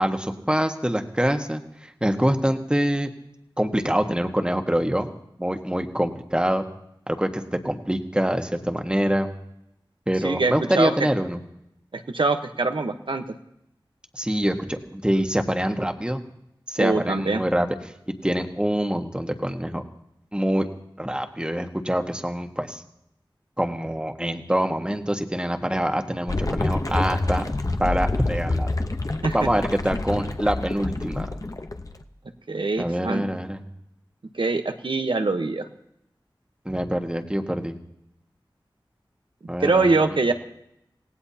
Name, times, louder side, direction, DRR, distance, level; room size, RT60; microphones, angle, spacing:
voice 1, 0.0-3.1 3.6-5.1 5.4-6.6 7.1-9.3 10.1-11.4 14.1-16.2 16.7-17.7 18.2-19.8 20.3-20.7 21.0-22.8 23.6-27.4 27.8-28.7 29.3-31.3 32.8-33.6 36.6-37.7 39.5-40.2, equal, 10° right, 5 dB, 1.5 m, -25 dB
voice 2, 10.2-10.9 11.9-13.2 16.8-17.4 29.2-29.3 32.5-33.3 34.3-35.7 39.6-40.3, right 3 dB, 75° right, 6 dB, 1.1 m, -23 dB
sound 1, 26.3-32.0, left 2 dB, 45° left, 0.9 m, -27 dB
26.0 x 18.0 x 2.9 m, 0.81 s
wide cardioid pair, 55°, 8 cm